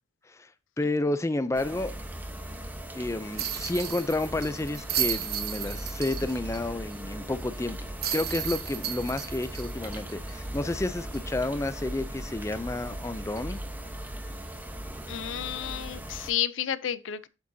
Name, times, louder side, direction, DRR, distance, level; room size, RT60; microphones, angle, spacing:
voice 1, 0.8-1.9 2.9-7.8 8.1-13.6, left 2 dB, 15° left, 0.4 m, -30 dB
sound 1, 1.5-16.3, right 1 dB, 10° right, 0.9 m, -38 dB
sound 2, 3.4-6.6 6.9-7.0 8.0-10.7 11.1-11.2 13.4-13.6, right 10 dB, 55° right, 1.0 m, -34 dB
voice 2, 15.1-17.3, left 10 dB, 80° left, 0.5 m, -31 dB
8.2 x 7.5 x 2.7 m
head